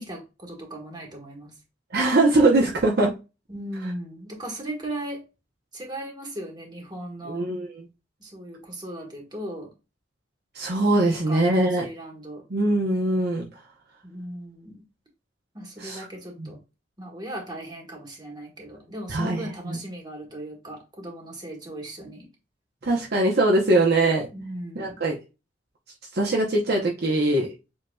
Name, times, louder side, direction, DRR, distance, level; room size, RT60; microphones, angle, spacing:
voice 1, 0.0-1.5 3.5-5.2 5.7-7.5 8.2-9.7 10.9-12.4 14.0-14.8 15.5-16.6 17.0-22.3 24.3-25.0, right 1 dB, 20° right, 0 dB, 1.6 m, -37 dB
voice 2, 1.9-3.1 7.2-7.9 10.5-11.8 12.5-13.5 15.8-16.0 16.4-16.5 19.1-19.8 22.8-24.3 24.8-25.1 26.1-27.5, right 2 dB, 55° right, -2 dB, 0.8 m, -22 dB
7.6 x 2.8 x 2.3 m, 0.29 s
head